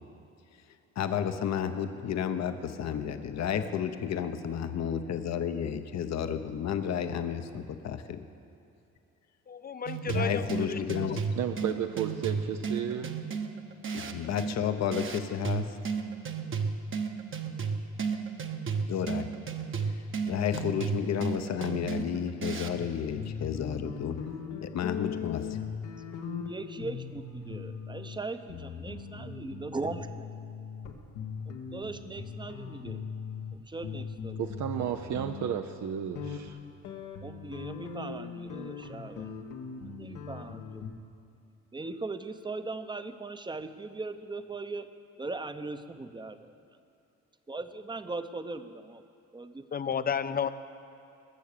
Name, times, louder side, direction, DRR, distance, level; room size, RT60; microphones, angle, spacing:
voice 1, 1.0-8.2 10.1-11.2 13.9-15.7 18.9-19.3 19.8-19.9 20.3-24.2 24.6-25.6, left 8 dB, 60° left, 9 dB, 0.9 m, -31 dB
voice 2, 9.5-10.8 11.1-11.2 49.7-50.5, left 7 dB, 30° left, 13 dB, 0.6 m, -32 dB
sound 1, 9.9-22.9, right 5 dB, 40° right, 1.1 m, -34 dB
voice 3, 11.4-13.2 34.4-36.6, right 9 dB, 70° right, 6 dB, 0.7 m, -33 dB
sound 2, 22.7-22.9 23.2-33.6 33.8-40.9, left 6 dB, 85° left, 1.4 m, -40 dB
voice 4, 26.4-30.1 31.7-33.0 33.5-34.4 37.2-39.3 39.9-40.8 41.7-44.9 45.2-46.4 47.5-49.0 49.3-49.7, right 3 dB, 15° right, 10 dB, 0.7 m, -39 dB
21.0 x 7.1 x 6.8 m, 2.8 s
cardioid pair, 90°, 30 cm